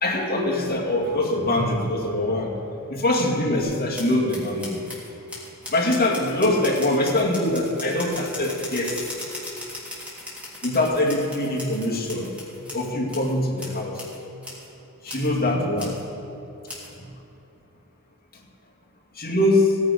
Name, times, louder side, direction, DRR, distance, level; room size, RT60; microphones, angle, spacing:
voice 1, 0.0-2.5 2.9-4.8 5.7-9.0 10.6-12.3 12.7-14.0 15.0-16.0 19.2-19.8, left 1 dB, 45° left, -2 dB, 2.4 m, -23 dB
sound 1, 3.6-13.3 13.6-14.2 14.4-14.7 15.1-15.3 15.8-16.0 16.7-16.9, left 1 dB, 5° right, 3.0 m, -38 dB
16.5 x 9.5 x 5.2 m, 2.9 s
head